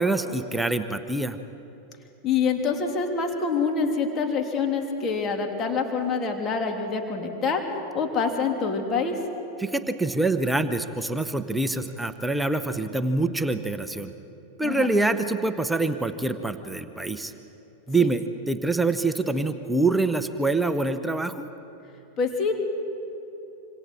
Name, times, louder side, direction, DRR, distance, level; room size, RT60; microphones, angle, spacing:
voice 1, 0.0-1.4 9.6-14.1 14.6-17.3 17.9-21.5, right 2 dB, 5° right, 10 dB, 0.9 m, -25 dB
voice 2, 2.2-7.6 7.9-9.2 14.6-14.9 22.2-22.5, left 5 dB, 25° left, 3 dB, 2.9 m, -26 dB
26.5 x 26.0 x 4.6 m, 3.0 s
figure-of-eight pair, 90°, 0 cm